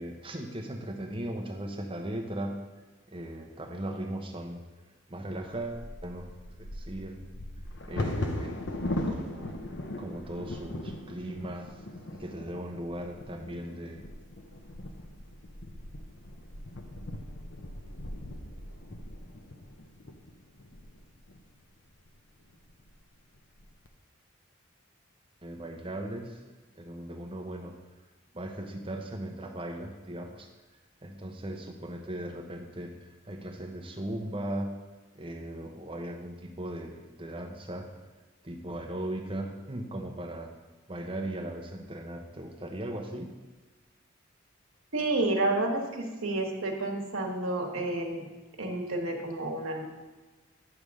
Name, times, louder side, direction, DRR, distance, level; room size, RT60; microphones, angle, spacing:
voice 1, 0.0-2.6 3.1-4.6 5.1-6.3 6.6-7.2 7.9-8.7 9.1-9.6 10.0-11.7 12.1-14.1 25.4-26.4 26.7-27.8 28.3-30.5 31.0-34.8 35.1-37.9 38.4-40.5 40.9-43.3, right 1 dB, 25° right, 2 dB, 0.8 m, -38 dB
Bird vocalization bird call bird song / Wind / Thunder, 5.5-21.4 22.1-22.2 22.5-22.9 23.3-23.9, left 1 dB, 55° left, 0.7 m, -39 dB
voice 2, 44.9-48.3 48.6-49.9, right 2 dB, 85° right, 1 dB, 1.2 m, -30 dB
9.8 x 3.5 x 6.2 m, 1.3 s
head